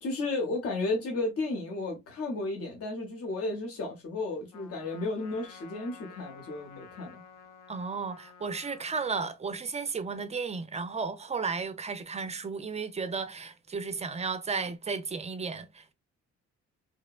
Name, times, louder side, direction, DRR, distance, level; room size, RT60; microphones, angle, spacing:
voice 1, 0.0-7.2, left 2 dB, 50° left, 0.9 m, -33 dB
Trumpet, 4.5-9.2, left 6 dB, 90° left, 0.6 m, -52 dB
voice 2, 7.7-15.9, right 5 dB, 25° right, 0.4 m, -34 dB
2.9 x 2.1 x 2.3 m
cardioid pair, 90°, 30 cm